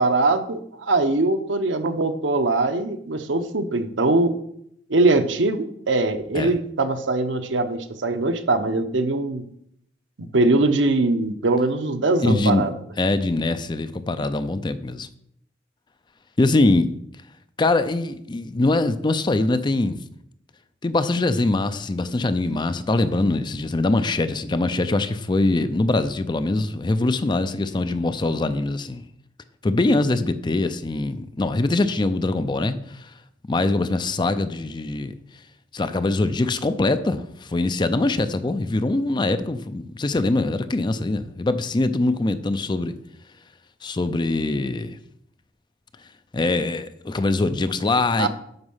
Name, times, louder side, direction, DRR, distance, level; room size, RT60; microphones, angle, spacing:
voice 1, 0.0-4.3 4.9-9.4 10.2-12.7 48.2-48.3, right 2 dB, 80° right, 0.8 m, -22 dB
voice 2, 12.2-12.7 13.0-15.1 16.4-16.9 17.6-20.0 20.8-29.0 29.6-33.1 33.5-35.1 35.7-42.9 43.8-45.0 46.3-48.3, left 2 dB, 25° left, 0.4 m, -23 dB
7.9 x 5.3 x 5.6 m
head